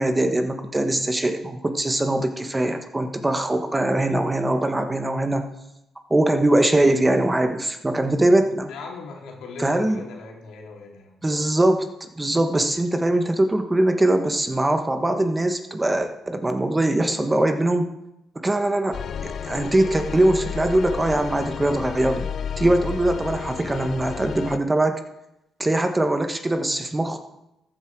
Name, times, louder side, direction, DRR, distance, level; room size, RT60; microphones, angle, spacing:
voice 1, 0.0-5.5 6.1-8.7 9.6-10.0 11.2-11.8 12.2-17.9 18.3-22.3 22.6-25.0 25.6-27.2, right 1 dB, 15° right, 7 dB, 1.2 m, -22 dB
voice 2, 8.7-11.1, left 4 dB, 85° left, 0 dB, 2.9 m, -39 dB
sound 1, 18.9-24.6, left 7 dB, 60° left, 0.6 m, -32 dB
14.0 x 8.6 x 4.7 m, 0.89 s
cardioid pair, 90°, 0 cm